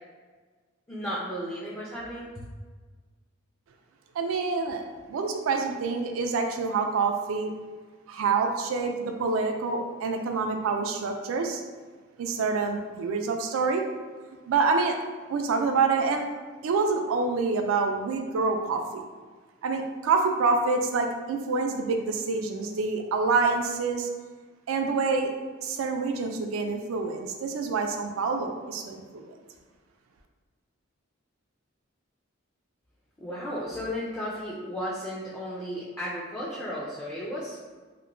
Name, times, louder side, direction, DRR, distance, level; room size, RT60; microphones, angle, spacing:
voice 1, 0.9-2.4 33.2-37.6, equal, 10° left, -8 dB, 0.3 m, -34 dB
voice 2, 4.1-7.5 8.1-11.6 12.2-13.8 14.5-15.0 15.3-16.2 16.6-19.1 19.6-24.1 24.7-25.3 25.6-29.3, right 4 dB, 75° right, 5 dB, 0.3 m, -27 dB
2.9 x 2.1 x 2.5 m, 1.4 s
head